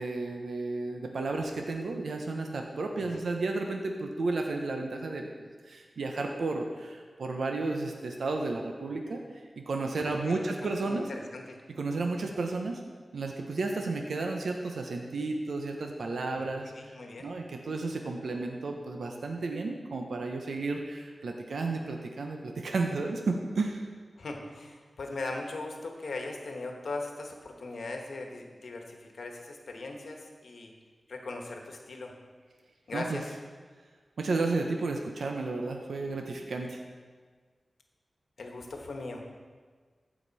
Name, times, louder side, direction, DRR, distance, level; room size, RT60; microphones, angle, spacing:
voice 1, 0.0-9.2 9.6-11.1 11.8-12.8 13.1-23.9 32.9-33.2 34.2-36.8, right 3 dB, 85° right, 3 dB, 0.8 m, -32 dB
voice 2, 10.9-11.6 16.4-17.3 24.2-30.7 31.1-32.1 32.9-33.3 38.4-39.4, left 2 dB, 80° left, 2 dB, 1.2 m, -39 dB
15.0 x 5.1 x 4.1 m, 1.5 s
cardioid pair, 50°, 0 cm